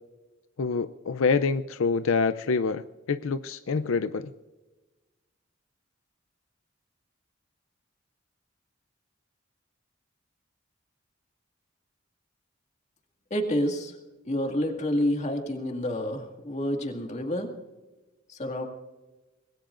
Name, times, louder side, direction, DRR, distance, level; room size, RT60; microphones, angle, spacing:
voice 1, 0.6-4.3, left 4 dB, 85° left, 12 dB, 0.5 m, -26 dB
voice 2, 13.3-14.0 14.3-17.5 18.3-18.6, equal, 35° left, 4 dB, 2.1 m, -28 dB
25.0 x 20.5 x 2.6 m, 1.2 s
head